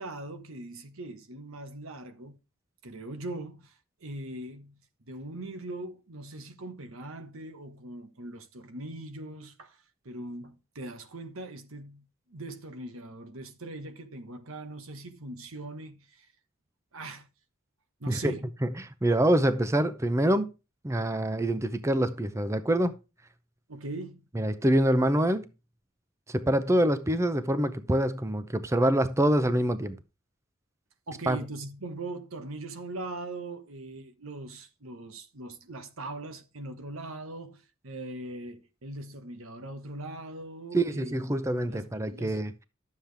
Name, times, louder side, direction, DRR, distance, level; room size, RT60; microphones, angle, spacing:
voice 1, 0.0-2.4 2.8-3.7 4.0-4.8 5.1-9.8 10.0-16.3 16.9-17.3 18.0-18.5 23.7-24.2 31.1-41.4 41.7-42.4, right 2 dB, 80° right, 1.3 m, -41 dB
voice 2, 18.6-20.5 20.8-22.9 24.3-25.5 26.3-30.0 31.3-31.4 40.7-42.5, right 1 dB, 15° right, 0.5 m, -25 dB
11.5 x 7.4 x 3.4 m
head